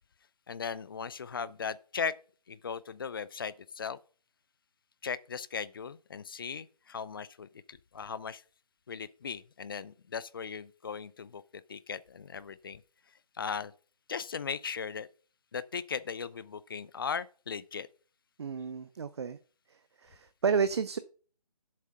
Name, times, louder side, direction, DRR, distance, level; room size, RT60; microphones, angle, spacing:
voice 1, 0.5-2.1 2.5-4.0 5.0-8.4 8.9-11.4 11.7-12.8 13.3-13.7 14.1-15.1 15.5-17.9, left 6 dB, 35° left, 0.5 m, -38 dB
voice 2, 18.4-19.4 20.0-21.0, right 6 dB, 45° right, 0.5 m, -31 dB
7.6 x 7.1 x 5.6 m
figure-of-eight pair, 150°, 19 cm